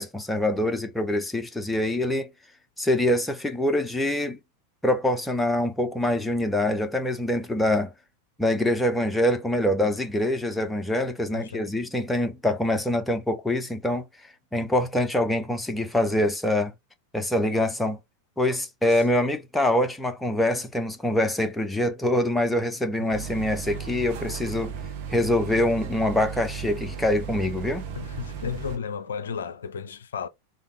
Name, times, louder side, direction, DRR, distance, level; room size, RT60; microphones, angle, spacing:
voice 1, 0.0-2.3 2.8-4.4 4.8-7.9 8.4-14.0 14.5-16.7 17.1-18.0 18.4-24.8 25.1-27.8, left 1 dB, 5° left, 0.5 m, -25 dB
voice 2, 11.3-11.7 23.0-23.1 27.9-30.3, left 6 dB, 65° left, 0.4 m, -33 dB
sound 1, 23.1-28.8, right 7 dB, 50° right, 0.6 m, -35 dB
3.3 x 2.3 x 3.3 m
figure-of-eight pair, 90°, 0 cm